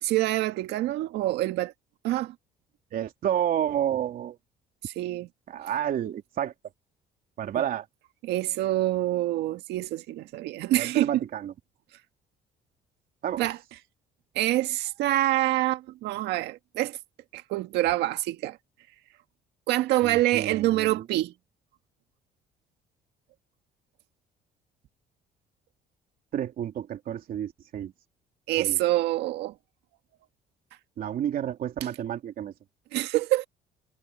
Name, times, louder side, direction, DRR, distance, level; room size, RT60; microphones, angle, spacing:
voice 1, 0.0-1.7 2.0-2.3 4.8-5.3 8.2-11.2 13.4-13.6 14.3-17.0 17.3-18.6 19.7-21.3 28.5-29.5 32.9-33.5, right 15 dB, 85° right, 1.7 m, -26 dB
voice 2, 2.9-4.4 5.5-6.5 7.4-7.9 10.7-11.5 13.2-13.5 20.0-20.9 26.3-27.9 28.5-28.8 31.0-32.5, right 10 dB, 60° right, 3.1 m, -30 dB
cardioid pair, 110°, 17 cm